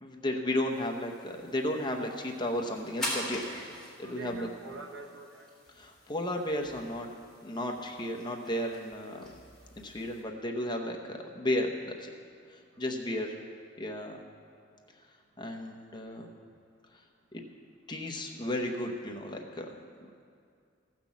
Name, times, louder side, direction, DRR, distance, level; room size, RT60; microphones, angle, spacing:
voice 1, 0.0-3.4 4.0-4.5 5.8-7.1 7.4-9.2 9.8-12.1 12.8-13.3 13.8-14.2 15.4-16.3 17.3-17.4 17.9-19.7, left 1 dB, 25° left, 2 dB, 0.9 m, -33 dB
sound 1, 0.7-10.2, left 1 dB, 5° left, 3.1 m, -44 dB
voice 2, 3.5-5.5 12.8-12.9, right 3 dB, 70° right, 2 dB, 1.3 m, -46 dB
15.0 x 6.0 x 7.2 m, 2.3 s
head